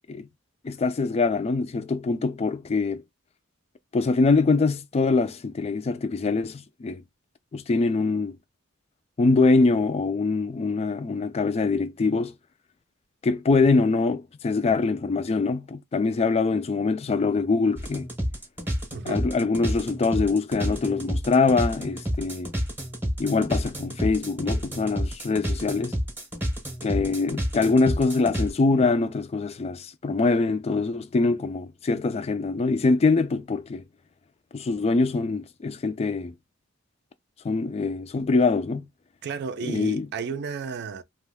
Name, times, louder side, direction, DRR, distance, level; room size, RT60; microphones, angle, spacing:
voice 1, 0.6-3.0 3.9-7.0 7.5-8.4 9.2-12.3 13.2-18.1 19.1-22.5 23.2-26.0 26.8-33.8 34.5-36.3 37.4-38.8 39.6-40.1, left 3 dB, 30° left, 0.3 m, -24 dB
sound 1, 17.8-28.5, equal, 10° right, 0.8 m, -29 dB
voice 2, 18.9-19.2 39.2-41.0, right 5 dB, 55° right, 0.4 m, -33 dB
2.5 x 2.3 x 3.3 m
head